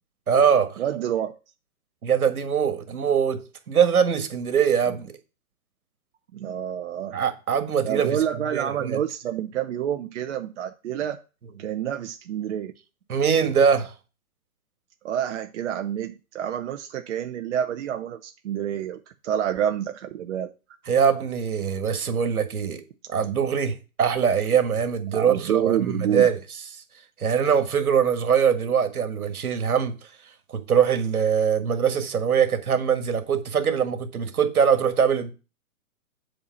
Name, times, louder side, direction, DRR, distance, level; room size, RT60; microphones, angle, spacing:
voice 1, 0.3-0.8 2.0-5.1 7.1-8.2 8.5-9.0 13.1-13.9 20.9-22.8 23.1-26.4 27.2-29.9 30.5-35.3, right 7 dB, 80° right, 1.9 m, -22 dB
voice 2, 0.8-1.3 6.3-7.2 7.8-11.2 11.6-12.7 15.0-20.5 25.1-26.3, right 10 dB, 55° right, 0.8 m, -28 dB
7.9 x 4.3 x 7.1 m
hypercardioid pair, 140°, 43 cm